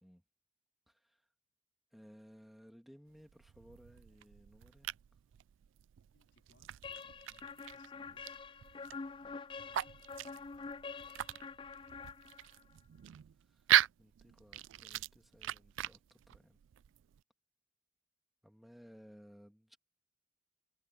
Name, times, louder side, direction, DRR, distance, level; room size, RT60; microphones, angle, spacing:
voice 1, 0.9-1.2 1.9-4.9 13.5-13.7 14.0-16.6 18.4-19.8, equal, ahead, 2.4 m, -59 dB
sound 1, 3.1-17.2, right 12 dB, 80° right, 0.3 m, -39 dB
voice 2, 6.1-8.3 8.7-9.7 10.2-10.7 11.6-11.8, left 2 dB, 75° left, 4.2 m, -72 dB
sound 2, 6.8-12.7, left 4 dB, 25° left, 0.4 m, -47 dB
head